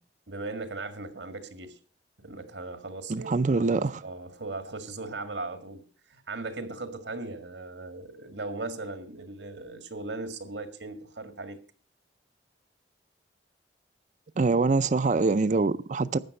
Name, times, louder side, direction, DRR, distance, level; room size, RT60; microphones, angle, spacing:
voice 1, 0.3-1.8 2.2-3.3 3.7-11.6, right 3 dB, 90° right, 1.9 m, -38 dB
voice 2, 3.1-4.0 14.4-16.2, right 3 dB, 45° right, 0.5 m, -24 dB
13.0 x 8.7 x 6.4 m
head